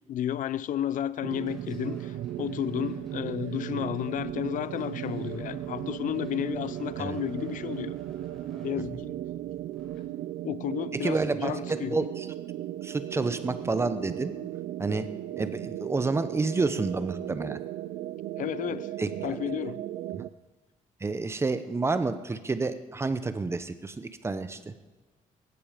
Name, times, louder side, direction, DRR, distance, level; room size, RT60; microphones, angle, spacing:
voice 1, 0.1-7.9 8.6-9.1 10.4-12.0 18.4-18.9 19.2-19.8, left 11 dB, 70° left, 0.6 m, -32 dB
sound 1, 1.2-20.3, right 13 dB, 90° right, 0.5 m, -36 dB
sound 2, 1.3-10.0, right 1 dB, ahead, 7.0 m, -52 dB
voice 2, 10.9-12.3 12.8-14.4 14.8-15.1 15.4-17.6 19.0-19.4 20.1-20.2 21.0-24.7, right 3 dB, 20° right, 0.9 m, -29 dB
18.5 x 15.0 x 5.2 m
cardioid pair, 140°, 14 cm